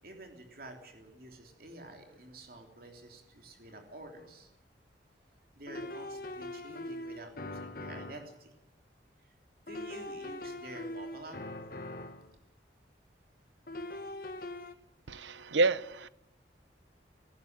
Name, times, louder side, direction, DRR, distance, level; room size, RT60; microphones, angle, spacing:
voice 1, 0.0-4.5 5.6-8.5 9.2-9.3 9.7-11.4, right 2 dB, 50° right, 3 dB, 3.2 m, -49 dB
sound 1, 4.2-4.3 5.7-8.3 9.7-12.3 13.7-14.7, left 1 dB, 50° left, 1.4 m, -42 dB
voice 2, 15.1-16.1, right 3 dB, 80° right, 17 dB, 0.8 m, -29 dB
18.0 x 17.0 x 9.0 m, 0.84 s
head